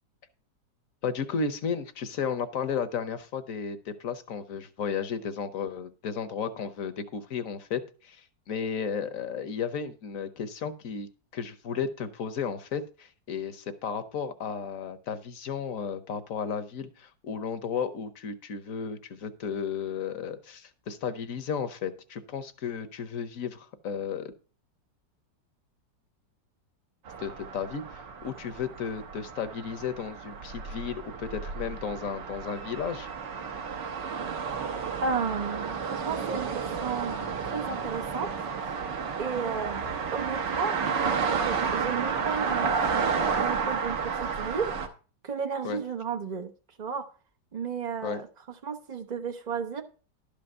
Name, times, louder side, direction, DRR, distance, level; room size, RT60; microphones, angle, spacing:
voice 1, 1.0-24.3 27.2-33.1 45.6-45.8 48.0-48.2, left 6 dB, 55° left, 1.1 m, -34 dB
sound 1, 27.1-44.9, right 5 dB, 75° right, 1.9 m, -31 dB
voice 2, 35.0-38.3 39.2-39.8 40.1-44.7 45.2-46.5 46.8-47.1 47.5-48.3 48.6-49.8, right 5 dB, 50° right, 0.5 m, -33 dB
11.5 x 5.2 x 6.6 m
omnidirectional pair, 1.9 m